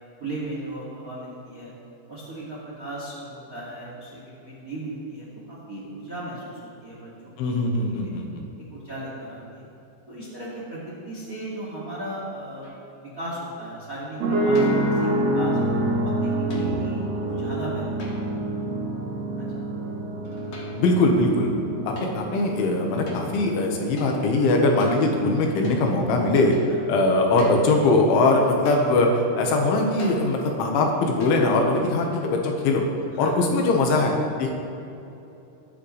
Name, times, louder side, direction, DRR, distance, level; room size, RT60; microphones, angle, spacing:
voice 1, 0.2-1.7 2.1-8.1 8.7-9.7 10.1-12.7 13.1-15.6 16.0-18.1 19.3-19.6 26.7-26.8 33.2-33.4, right 1 dB, 30° right, -6 dB, 1.7 m, -37 dB
voice 2, 7.4-8.3 14.7-14.8 16.5-16.7 20.7-21.5 21.9-26.6 26.9-32.8 33.2-34.5, left 2 dB, 85° left, 1 dB, 3.7 m, -21 dB
sound 1, 12.6-13.0 14.6-15.0 16.5-16.8 18.0-18.5 20.2-20.9 22.0-22.2 23.1-23.3 24.0-24.2 24.8-25.0 25.6-25.9 26.5-26.7 27.4-27.7 28.6-29.0 30.0-30.3 31.2-31.5, left 1 dB, 50° left, 2.4 m, -40 dB
sound 2, 14.2-24.2, right 1 dB, 85° right, 1.4 m, -27 dB
21.5 x 8.9 x 3.3 m, 2.9 s
omnidirectional pair, 5.3 m